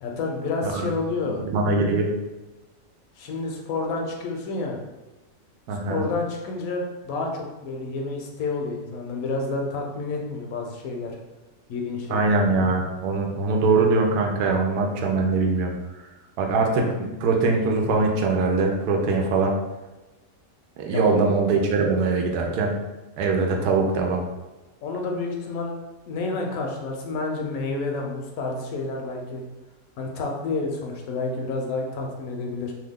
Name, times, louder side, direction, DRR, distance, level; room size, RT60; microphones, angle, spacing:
voice 1, 0.0-1.4 3.2-4.8 5.9-11.2 11.7-12.3 20.9-21.2 24.8-25.7 26.1-29.4 30.0-32.7, left 3 dB, 70° left, 1 dB, 1.0 m, -29 dB
voice 2, 1.5-2.1 5.7-6.0 12.1-15.7 16.4-19.5 20.8-22.7 23.2-24.2, right 3 dB, 85° right, 2 dB, 1.1 m, -22 dB
2.8 x 2.3 x 3.5 m, 1.1 s
omnidirectional pair, 1.6 m